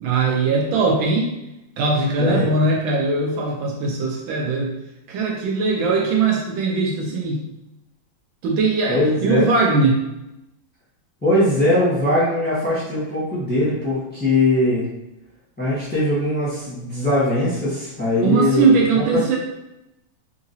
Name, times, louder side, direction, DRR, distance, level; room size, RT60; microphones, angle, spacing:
voice 1, 0.0-1.3 1.8-4.7 5.1-7.4 8.4-10.0 18.2-19.4, right 3 dB, 75° right, -1 dB, 1.4 m, -20 dB
voice 2, 2.2-2.5 8.9-9.4 11.2-14.9 15.6-18.8 19.1-19.2, left 1 dB, 5° left, -10 dB, 0.9 m, -20 dB
3.8 x 2.8 x 2.7 m, 0.93 s
omnidirectional pair, 2.3 m